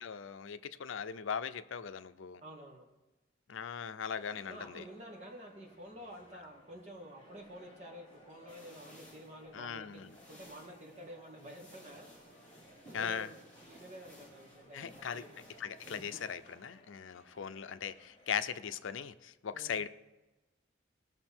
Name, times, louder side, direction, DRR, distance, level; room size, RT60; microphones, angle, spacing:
voice 1, 0.0-2.4 3.5-4.8 9.5-10.1 12.9-13.3 14.7-15.2 15.6-19.9, left 7 dB, 85° left, 12 dB, 0.5 m, -39 dB
voice 2, 2.4-2.8 4.5-10.0 10.3-12.1 12.8-15.4 19.5-19.8, equal, 35° right, -2 dB, 2.3 m, -50 dB
sound 1, 4.1-19.1, equal, 30° left, 2.1 m, -61 dB
sound 2, 8.5-16.8, equal, 5° left, 2.6 m, -58 dB
19.5 x 6.5 x 4.4 m, 1.1 s
head